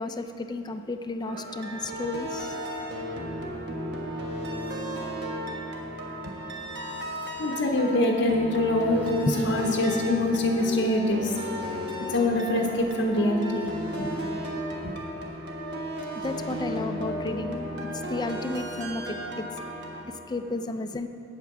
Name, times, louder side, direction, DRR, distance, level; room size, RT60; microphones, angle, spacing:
voice 1, 0.0-2.6 9.3-9.4 16.2-17.6 17.9-19.6 20.1-21.1, left 2 dB, 20° left, 8 dB, 0.4 m, -32 dB
sound 1, 1.3-20.0, equal, 60° right, 1.3 m, -34 dB
voice 2, 7.4-11.3 12.1-13.7 14.0-14.1 14.8-14.9, left 1 dB, 65° left, 1 dB, 0.8 m, -24 dB
8.3 x 8.2 x 5.9 m, 2.8 s
head